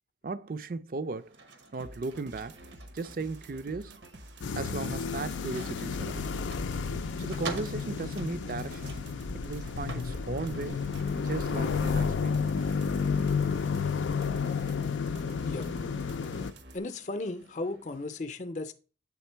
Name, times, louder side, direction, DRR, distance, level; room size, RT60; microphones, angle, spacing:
voice 1, 0.2-1.3 1.7-2.6 2.9-4.0 4.6-6.3 7.2-8.9 9.3-10.9 11.2-12.5, right 3 dB, 50° right, 0.4 m, -36 dB
Auto Rickshaw - Engine Cabinet (Back) Sounds, 1.0-18.2, right 3 dB, 90° right, 1.1 m, -50 dB
sound 1, 1.8-16.8, right 1 dB, 75° right, 0.8 m, -49 dB
sound 2, 4.4-16.5, left 5 dB, 90° left, 0.4 m, -31 dB
voice 2, 16.7-18.7, left 2 dB, 40° left, 0.6 m, -35 dB
8.2 x 3.6 x 4.4 m
head